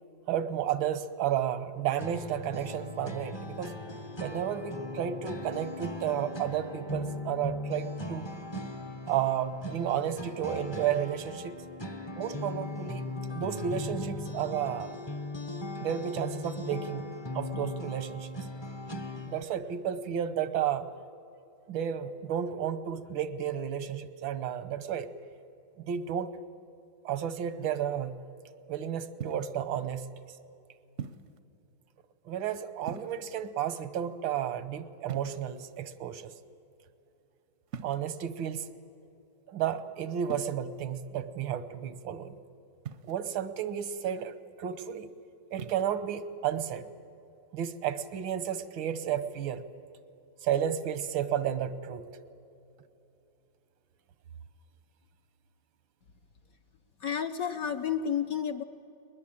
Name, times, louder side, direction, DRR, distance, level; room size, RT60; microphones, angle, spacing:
voice 1, 0.3-3.7 4.2-8.3 9.1-11.6 12.2-15.0 15.8-17.1 17.4-18.3 19.3-20.9 21.7-25.1 25.8-26.3 27.1-28.2 28.7-30.1 32.3-36.3 37.8-38.7 39.5-42.4 43.0-45.1 45.5-46.9 47.5-49.6 50.4-52.0, right 9 dB, 90° right, 13 dB, 1.8 m, -32 dB
sound 1, 2.0-19.4, left 1 dB, 25° left, 0.5 m, -38 dB
sound 2, 29.2-29.6 31.0-31.4 32.8-33.5 35.1-35.8 37.7-38.2 40.3-40.5 42.9-43.4 45.5-45.9, right 7 dB, 60° right, 0.8 m, -42 dB
voice 2, 57.0-58.6, left 8 dB, 60° left, 7 dB, 1.0 m, -31 dB
21.0 x 20.5 x 8.7 m, 2.8 s
omnidirectional pair, 2.1 m